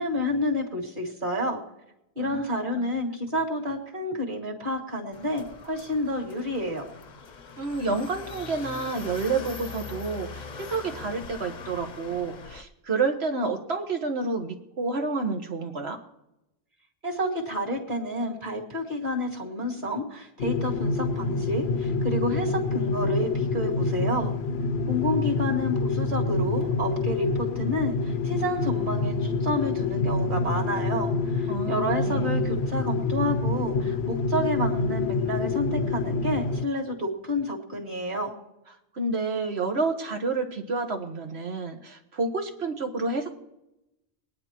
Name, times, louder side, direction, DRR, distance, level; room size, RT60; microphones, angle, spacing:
voice 1, 0.0-1.6 2.2-6.8 17.0-24.3 24.9-38.3, left 1 dB, 50° right, 0 dB, 2.4 m, -29 dB
sound 1, 5.1-12.6, left 4 dB, 50° left, 0.8 m, -41 dB
voice 2, 7.6-16.0 31.5-32.4 38.9-43.3, right 3 dB, 90° right, 5 dB, 1.6 m, -29 dB
sound 2, 20.4-36.6, left 3 dB, 75° left, 0.9 m, -27 dB
23.0 x 9.7 x 3.0 m, 0.90 s
omnidirectional pair, 1.1 m